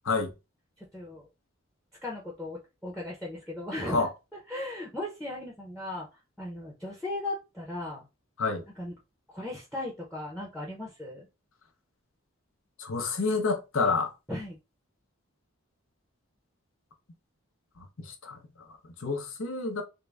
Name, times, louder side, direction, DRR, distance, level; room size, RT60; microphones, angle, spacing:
voice 1, 0.9-1.3 2.0-4.1 4.5-6.1 6.4-8.1 8.8-8.9 9.3-11.3 14.3-14.6, left 1 dB, ahead, 0.7 m, -37 dB
voice 2, 12.8-14.1 17.8-18.4 19.0-19.8, left 4 dB, 70° left, 0.8 m, -28 dB
3.7 x 2.2 x 3.3 m
head